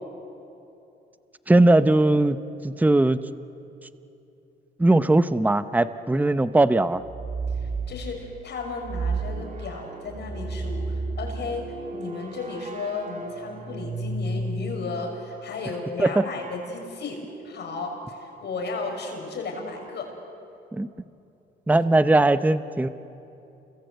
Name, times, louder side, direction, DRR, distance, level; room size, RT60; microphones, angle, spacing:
voice 1, 1.5-2.4 2.6-3.2 4.8-7.0 16.0-16.2 20.7-20.9 21.7-22.9, right 2 dB, 10° right, 12 dB, 0.8 m, -19 dB
sound 1, 7.0-8.0 8.8-14.8, right 3 dB, 35° right, 2.5 m, -32 dB
voice 2, 7.5-20.1, left 3 dB, 60° left, 2 dB, 6.1 m, -34 dB
29.0 x 23.0 x 8.0 m, 2.8 s
cardioid pair, 90°, 20 cm